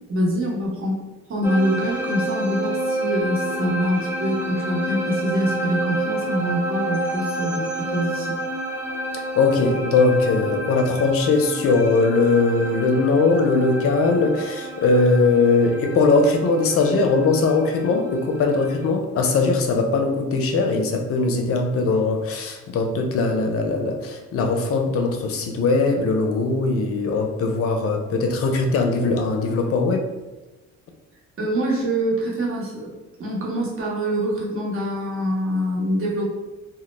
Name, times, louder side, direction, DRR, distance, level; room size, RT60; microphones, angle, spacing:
voice 1, 0.1-1.0 1.3-8.4 31.4-32.9 33.2-36.3, equal, 45° right, -4 dB, 0.9 m, -24 dB
sound 1, 1.4-18.9, right 1 dB, 10° right, 0.5 m, -29 dB
voice 2, 9.4-30.1, left 3 dB, 50° left, 4 dB, 0.5 m, -20 dB
2.1 x 2.0 x 3.1 m, 1.1 s
cardioid pair, 90°, 30 cm